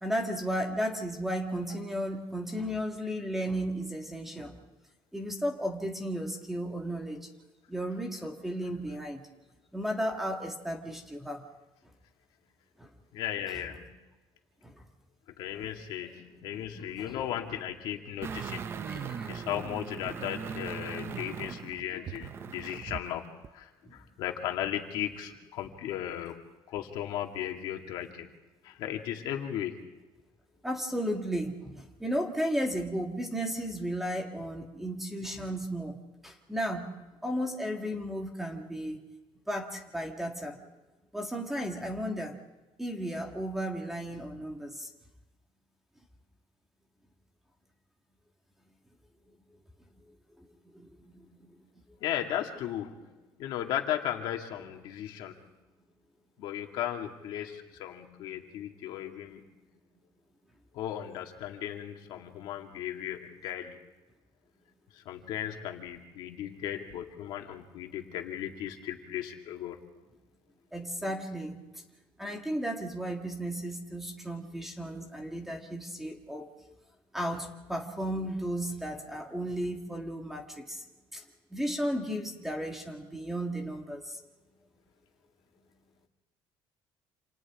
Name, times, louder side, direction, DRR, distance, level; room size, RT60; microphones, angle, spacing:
voice 1, 0.0-4.6 5.1-7.3 7.7-9.2 9.7-11.4 12.8-12.9 13.5-13.6 14.6-14.8 15.6-15.7 16.4-17.3 18.8-19.4 23.8-24.0 28.1-28.2 30.6-36.0 36.2-36.9 37.2-39.0 39.5-40.6 41.1-42.4 42.8-44.9 50.4-50.5 50.7-51.6 70.7-71.8 72.2-76.5 77.1-80.8 81.1-81.2 81.5-84.2, equal, 5° right, 3 dB, 1.8 m, -34 dB
voice 2, 13.1-13.8 15.4-18.6 18.9-23.2 23.5-26.4 26.7-28.3 28.6-29.8 52.0-53.0 53.4-55.3 56.4-59.4 60.7-63.8 65.1-69.8, left 11 dB, 60° left, 3 dB, 2.3 m, -36 dB
sound 1, 18.2-23.1 23.4-23.5, right 7 dB, 30° right, 0.6 m, -39 dB
28.5 x 28.0 x 3.7 m, 1.1 s
cardioid pair, 175°, 9 cm